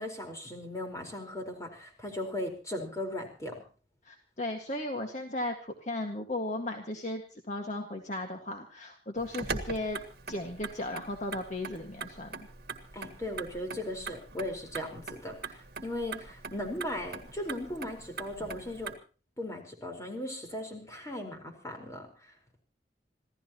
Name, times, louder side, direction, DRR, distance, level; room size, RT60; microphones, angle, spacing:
voice 1, 0.0-3.6 12.9-18.9 19.4-22.1, left 1 dB, 20° left, 3 dB, 4.6 m, -37 dB
voice 2, 4.1-10.0 10.3-12.5, left 1 dB, 45° left, 3 dB, 1.9 m, -36 dB
Motor vehicle (road), 9.2-19.0, right 4 dB, 60° right, 1.7 m, -42 dB
26.5 x 16.0 x 3.0 m, 0.37 s
head